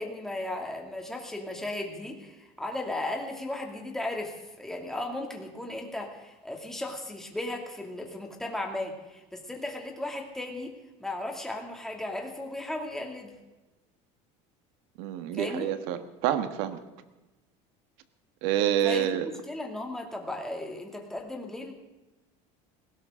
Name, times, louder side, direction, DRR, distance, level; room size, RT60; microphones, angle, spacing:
voice 1, 0.0-10.7 11.0-13.3 15.3-15.7 18.8-21.7, left 1 dB, 5° left, 1 dB, 2.6 m, -36 dB
voice 2, 15.0-16.8 18.4-19.3, right 10 dB, 75° right, 9 dB, 1.6 m, -27 dB
19.5 x 17.5 x 3.8 m, 1.1 s
cardioid pair, 145°, 15 cm